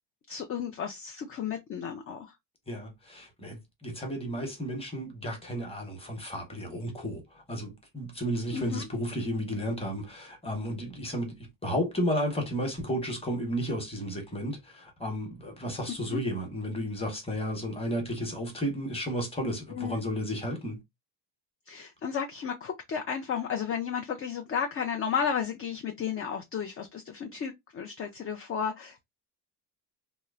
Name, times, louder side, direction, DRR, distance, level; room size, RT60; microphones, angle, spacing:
voice 1, 0.3-2.3 8.5-8.9 16.1-16.2 19.7-20.0 21.7-29.0, left 7 dB, 35° left, 0.4 m, -33 dB
voice 2, 2.7-20.8, equal, 15° left, 1.0 m, -33 dB
2.9 x 2.0 x 2.3 m
cardioid pair, 115°, 43 cm